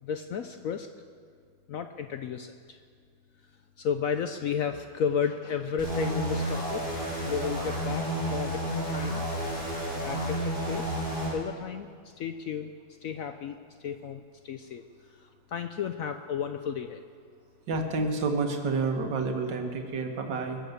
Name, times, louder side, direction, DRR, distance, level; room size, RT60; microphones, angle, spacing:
voice 1, 0.0-0.9 1.7-2.8 3.8-9.2 10.0-11.0 11.3-12.7 13.0-17.0, left 7 dB, 70° left, 8 dB, 0.8 m, -33 dB
sound 1, 5.8-11.3, right 1 dB, 25° left, 5.3 m, -31 dB
voice 2, 17.7-20.6, right 3 dB, 75° right, 4 dB, 2.0 m, -29 dB
22.5 x 7.7 x 6.6 m, 2.1 s
omnidirectional pair, 2.0 m